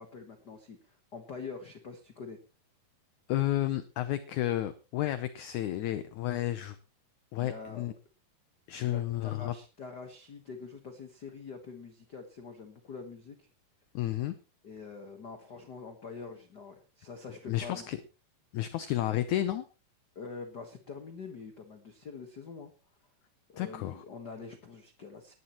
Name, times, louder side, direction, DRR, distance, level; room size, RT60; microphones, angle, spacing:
voice 1, 0.0-2.4 7.3-7.9 8.8-13.5 14.6-17.9 20.1-22.7 23.5-25.3, left 5 dB, 55° left, 6 dB, 1.1 m, -45 dB
voice 2, 3.3-6.8 7.3-7.9 8.7-9.5 13.9-14.4 17.5-18.0 18.5-19.7 23.6-24.0, left 13 dB, 75° left, 12 dB, 1.9 m, -31 dB
19.5 x 11.0 x 3.0 m, 0.30 s
omnidirectional pair, 4.0 m